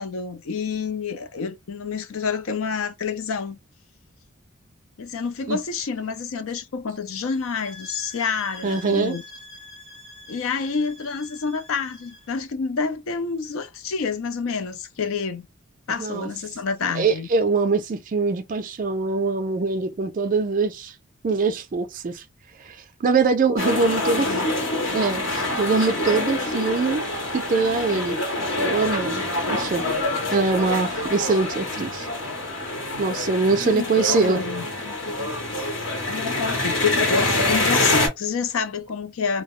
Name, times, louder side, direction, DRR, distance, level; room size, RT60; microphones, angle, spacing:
voice 1, 0.0-3.6 5.0-9.2 10.3-15.5 15.9-17.3 23.6-24.5 33.6-34.6 36.1-39.4, left 5 dB, 75° left, 0.5 m, -28 dB
sound 1, 7.3-12.3, left 2 dB, 30° left, 0.9 m, -44 dB
voice 2, 8.6-9.1 16.0-16.3 16.8-20.9 21.2-22.2 22.6-24.3 24.9-27.0 27.3-28.2 28.6-29.9 30.3-32.1 33.0-34.4, right 4 dB, 40° right, 0.3 m, -23 dB
sound 2, 23.6-38.1, left 2 dB, 60° left, 0.9 m, -26 dB
2.2 x 2.0 x 2.9 m
head